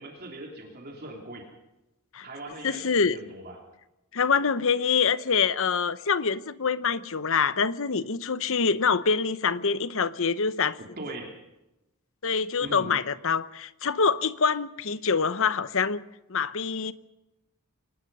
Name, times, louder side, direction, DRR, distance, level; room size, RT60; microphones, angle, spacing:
voice 1, 0.0-1.5 2.2-3.6 10.8-11.3 12.6-12.9, right 1 dB, 45° right, 3.1 m, -40 dB
voice 2, 2.6-3.2 4.1-10.8 12.2-16.0 16.3-16.9, left 5 dB, 65° left, 0.9 m, -25 dB
25.0 x 19.0 x 5.5 m
head